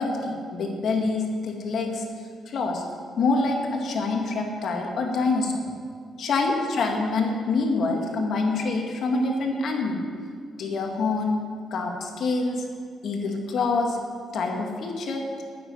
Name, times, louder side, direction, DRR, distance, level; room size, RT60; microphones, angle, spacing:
voice 1, 0.0-2.0 2.5-2.8 3.2-5.6 6.3-10.0 10.6-11.4 11.7-12.6 13.0-14.0 14.3-15.2, left 3 dB, 65° left, 1 dB, 2.2 m, -26 dB
9.6 x 8.0 x 9.3 m, 2.1 s
cardioid pair, 90°, 0 cm